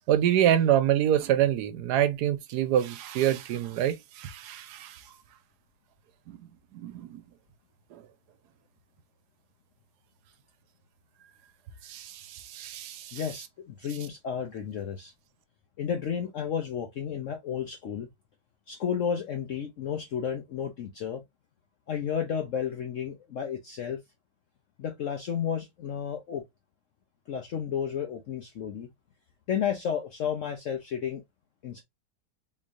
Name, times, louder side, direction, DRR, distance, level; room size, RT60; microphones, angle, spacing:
voice 1, 0.1-5.0 6.3-6.4 6.7-7.2 11.9-13.2, right 11 dB, 75° right, 1.1 m, -26 dB
voice 2, 13.1-15.1 15.8-18.1 18.7-21.2 21.9-24.0 24.8-26.4 27.3-28.9 29.5-31.2 31.6-31.8, left 8 dB, 65° left, 0.8 m, -32 dB
3.7 x 3.1 x 2.5 m
omnidirectional pair, 1.9 m